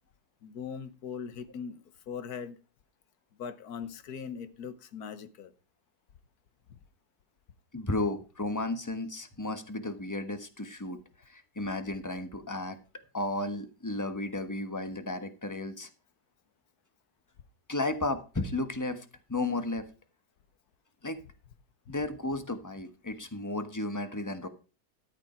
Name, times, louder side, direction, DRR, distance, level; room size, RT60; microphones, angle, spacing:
voice 1, 0.4-2.6 3.4-5.5 21.9-22.0, left 6 dB, 65° left, 1.5 m, -40 dB
voice 2, 7.7-11.0 11.2-12.8 13.1-15.9 17.7-19.9 21.0-21.2 21.9-24.5, left 2 dB, 10° left, 1.1 m, -33 dB
13.0 x 8.3 x 4.4 m
omnidirectional pair, 1.9 m